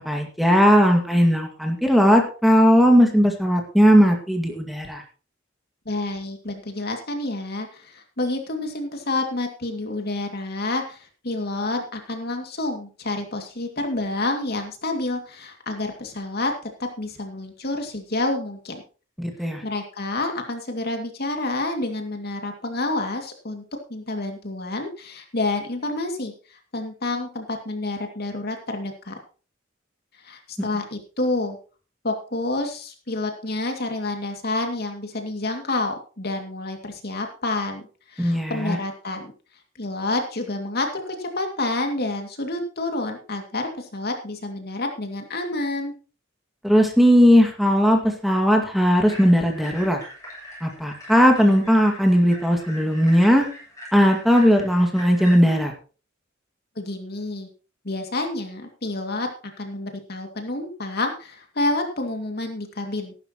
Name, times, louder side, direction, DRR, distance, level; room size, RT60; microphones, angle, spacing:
voice 1, 0.1-5.0 19.2-19.6 30.6-30.7 38.2-38.8 46.6-50.0 50.6-53.5 53.9-55.7, equal, ahead, 2 dB, 1.9 m, -18 dB
voice 2, 5.9-16.5 16.8-18.8 19.6-23.6 23.9-29.2 30.2-31.6 32.0-37.8 38.1-39.3 39.8-45.9 56.8-57.5 57.8-59.3 59.6-63.1, left 2 dB, 55° left, 4 dB, 2.4 m, -28 dB
sound 1, 49.1-55.3, equal, 15° left, 7.1 m, -41 dB
14.5 x 12.0 x 3.0 m, 0.36 s
head